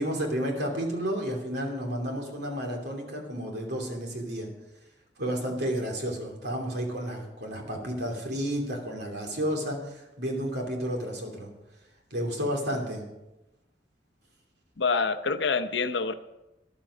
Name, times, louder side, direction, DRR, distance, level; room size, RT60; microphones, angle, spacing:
voice 1, 0.0-4.5 5.2-11.5 12.1-13.0, equal, 65° right, 1 dB, 3.0 m, -31 dB
voice 2, 14.8-16.1, left 4 dB, 75° left, 11 dB, 0.7 m, -26 dB
13.0 x 11.5 x 5.0 m, 0.96 s
head